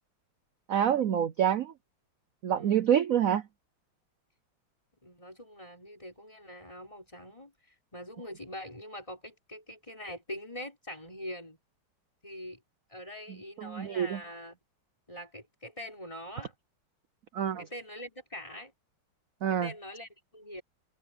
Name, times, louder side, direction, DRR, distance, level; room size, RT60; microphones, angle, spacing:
voice 1, 0.7-1.7 2.4-3.4 13.6-14.2 17.3-17.6 19.4-19.7, right 9 dB, 80° right, 0.7 m, -27 dB
voice 2, 2.5-3.0 5.0-11.6 12.2-12.6 12.9-14.6 15.1-16.5 17.6-18.7 19.5-20.6, equal, 15° left, 5.2 m, -44 dB
omnidirectional pair, 2.3 m